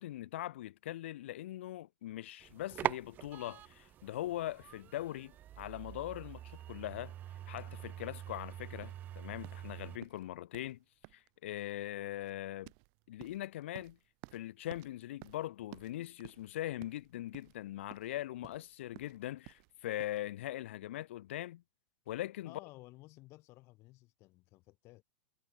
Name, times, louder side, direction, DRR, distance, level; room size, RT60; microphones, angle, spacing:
voice 1, 0.0-7.1 7.5-10.8 11.1-12.7 13.1-14.0 14.3-21.6 22.1-22.5, left 14 dB, 70° left, 0.8 m, -41 dB
sound 1, 2.4-10.0, right 12 dB, 25° right, 0.4 m, -44 dB
sound 2, 8.8-20.2, right 40 dB or more, 50° right, 4.3 m, -56 dB
voice 2, 22.4-25.0, left 20 dB, 40° left, 6.1 m, -55 dB
hypercardioid pair, 130°, 7 cm